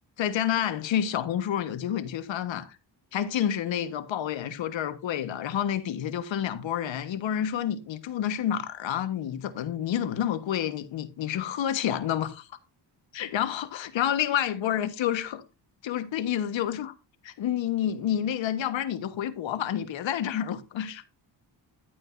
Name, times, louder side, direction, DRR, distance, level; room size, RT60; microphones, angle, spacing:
voice 1, 0.2-2.7 3.1-12.5 13.1-15.4 15.8-16.9 17.2-21.0, left 10 dB, 75° left, 1.5 m, -29 dB
11.5 x 8.9 x 2.6 m
cardioid pair, 105°, 46 cm